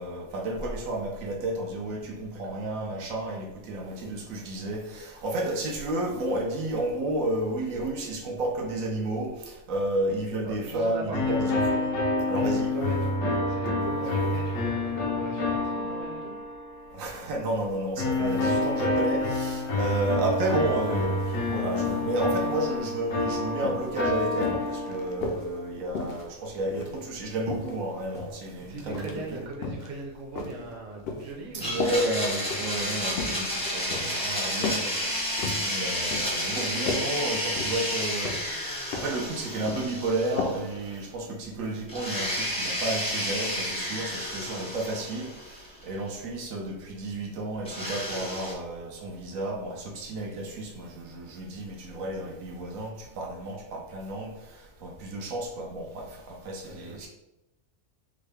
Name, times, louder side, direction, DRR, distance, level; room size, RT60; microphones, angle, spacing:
voice 1, 0.0-11.6 12.3-12.7 14.0-14.1 16.9-29.4 31.5-34.8 35.6-57.1, right 1 dB, 85° right, 0 dB, 1.1 m, -32 dB
voice 2, 10.4-11.7 12.1-16.3 18.1-18.9 28.6-32.1 34.7-35.1 44.5-44.7 56.6-57.1, right 3 dB, 40° right, -2 dB, 0.7 m, -40 dB
sound 1, 11.1-16.9 18.0-25.4, left 2 dB, 80° left, 1.0 m, -28 dB
sound 2, 23.2-23.3 23.6-23.9 24.4-25.5 25.9-27.0 27.5-28.4 28.9-29.2 29.5-29.9 30.4-31.3 31.8-32.0 32.4-32.7 33.1-33.4 33.9-34.2 34.6-34.9 35.2-35.7 36.1-36.4 36.7-37.1 37.6-37.9 38.2-38.5 38.9-39.2 39.5-39.9 40.4-40.6 40.9-41.0, left 3 dB, 65° left, 0.6 m, -34 dB
Domestic sounds home sounds, 31.6-40.8 41.0-41.1 41.9-45.8 47.6-48.5, equal, 5° left, 0.5 m, -31 dB
3.7 x 2.1 x 3.3 m, 0.94 s
omnidirectional pair, 1.4 m